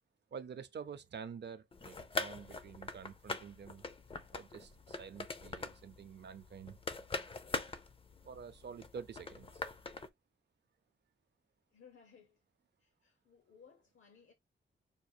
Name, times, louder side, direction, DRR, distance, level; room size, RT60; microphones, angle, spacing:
voice 1, 0.3-3.9 4.3-6.8 8.2-9.6, right 6 dB, 60° right, 0.6 m, -48 dB
sound 1, 1.7-10.1, left 3 dB, 25° left, 0.4 m, -43 dB
voice 2, 11.7-12.4 12.8-14.3, left 6 dB, 75° left, 0.9 m, -61 dB
5.2 x 2.4 x 2.7 m
wide cardioid pair, 160°, 20 cm